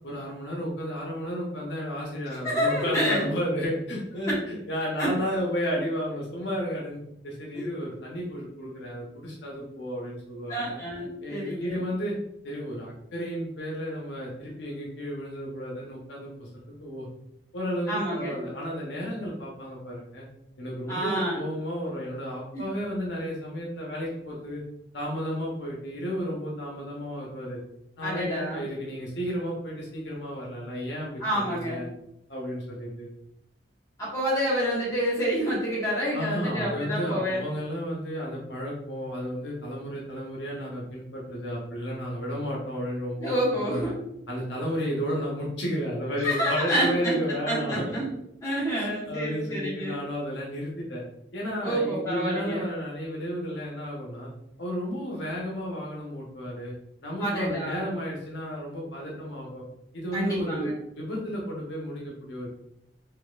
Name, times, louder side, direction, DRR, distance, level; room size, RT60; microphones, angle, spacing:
voice 1, 0.0-7.0 7.2-10.8 11.2-12.1 12.4-16.5 16.8-17.1 17.5-20.2 20.6-24.6 24.9-27.6 28.0-31.9 32.3-33.1 36.1-43.9 44.3-47.8 48.7-51.0 51.3-54.3 54.6-56.7 57.0-59.6 59.9-62.5, equal, 80° left, -3 dB, 0.9 m, -33 dB
voice 2, 2.4-3.3 5.0-5.1 7.5-7.7 10.5-11.8 17.9-18.4 20.9-21.4 22.5-22.6 28.0-28.6 31.2-31.8 34.0-37.4 43.2-43.9 46.2-47.1 47.4-48.1 48.4-49.9 51.6-52.6 57.2-57.8 60.1-60.7, equal, 20° left, -8 dB, 1.4 m, -28 dB
4.0 x 2.9 x 2.4 m, 0.80 s
head